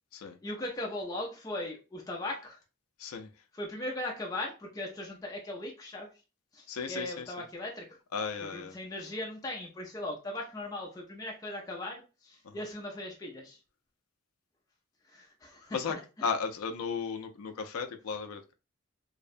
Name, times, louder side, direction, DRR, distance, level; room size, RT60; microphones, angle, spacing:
voice 1, 0.4-2.6 3.5-6.1 6.5-8.0 8.4-13.6 15.0-16.3, left 1 dB, 15° left, 0.4 m, -39 dB
voice 2, 6.7-7.2 8.1-8.7 12.4-12.6 15.7-18.5, left 5 dB, 85° left, 0.4 m, -35 dB
2.6 x 2.1 x 2.5 m
head